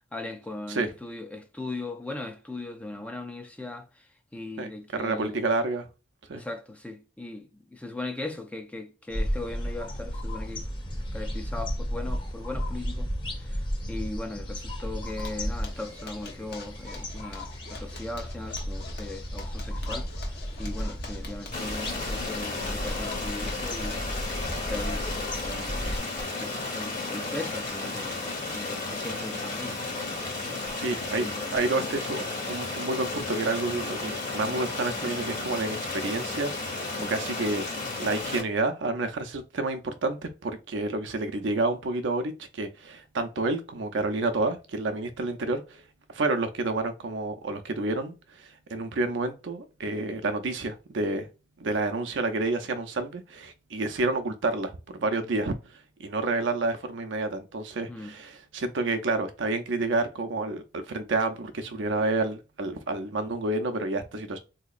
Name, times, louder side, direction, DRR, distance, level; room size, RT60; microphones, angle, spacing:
voice 1, 0.1-5.4 6.3-10.7 11.1-13.1 13.4-24.2 24.7-26.0 26.4-30.6 31.1-31.5 36.9-37.1 57.9-58.1, left 2 dB, 5° left, 0.4 m, -39 dB
voice 2, 4.6-5.9 6.3-6.4 30.8-31.3 31.5-37.7 38.0-45.8 46.1-51.3 51.6-55.6 56.0-64.4, right 2 dB, 75° right, 0.6 m, -29 dB
sound 1, 9.1-26.0, equal, 25° left, 0.8 m, -34 dB
Zipper (clothing), 15.0-33.2 33.5-33.6 33.9-34.0 34.4-34.8, left 2 dB, 60° left, 1.0 m, -46 dB
Stream, 21.5-38.4, left 3 dB, 45° left, 1.4 m, -33 dB
3.8 x 2.8 x 2.4 m
head